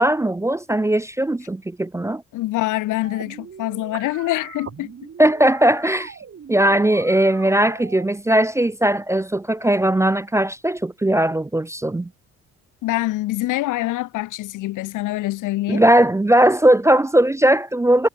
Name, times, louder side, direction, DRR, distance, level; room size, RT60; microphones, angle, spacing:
voice 1, 0.0-2.2 5.2-6.1 6.5-12.1 15.7-18.1, right 1 dB, 10° right, 0.4 m, -18 dB
voice 2, 2.3-4.9 6.7-6.8 12.8-15.8, left 17 dB, 90° left, 1.3 m, -25 dB
sound 1, 3.0-8.0, right 7 dB, 45° right, 5.3 m, -40 dB
cardioid pair, 90°, 30 cm